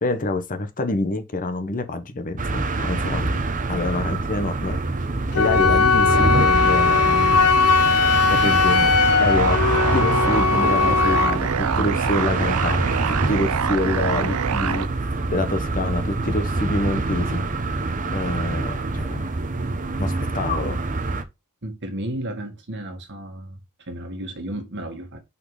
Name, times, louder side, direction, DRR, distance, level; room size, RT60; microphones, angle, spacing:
voice 1, 0.0-3.4 3.7-4.8 5.3-7.4 8.3-8.9 9.2-9.6 9.9-14.9 15.3-17.4 18.1-19.3 20.0-20.8, left 2 dB, 40° left, 1.0 m, -27 dB
sound 1, 2.4-21.2, right 2 dB, 35° right, 0.8 m, -25 dB
Wind instrument woodwind instrument, 5.3-11.4, left 5 dB, 80° left, 0.6 m, -19 dB
sound 2, 8.7-14.9, right 7 dB, 75° right, 0.5 m, -26 dB
voice 2, 21.6-25.2, right 1 dB, 55° right, 1.8 m, -33 dB
5.6 x 4.4 x 4.8 m
head